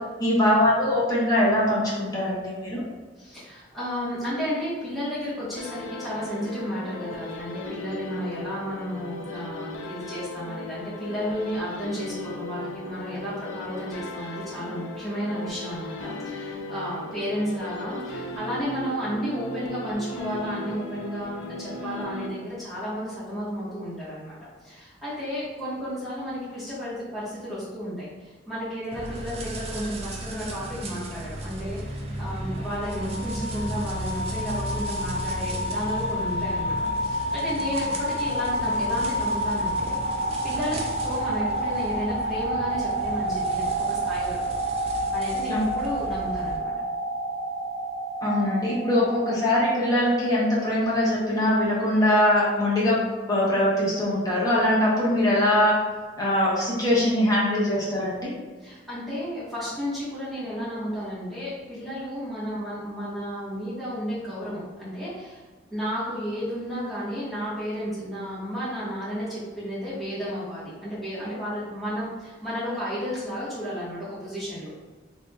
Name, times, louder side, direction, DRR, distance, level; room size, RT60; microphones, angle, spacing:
voice 1, 0.2-2.8 45.5-45.6 48.2-53.0 53.3-55.7 56.2-58.3, left 1 dB, 20° left, -7 dB, 0.8 m, -22 dB
voice 2, 3.2-24.4 24.6-44.4 44.8-46.7 58.6-65.4 65.7-74.7, equal, ahead, -13 dB, 1.4 m, -33 dB
sound 1, 5.6-22.8, left 2 dB, 85° left, 0.4 m, -37 dB
sound 2, 28.9-46.6, right 1 dB, 30° right, 0.3 m, -36 dB
sound 3, 32.5-50.2, right 1 dB, 55° right, 0.9 m, -29 dB
3.2 x 2.7 x 2.3 m, 1.3 s
head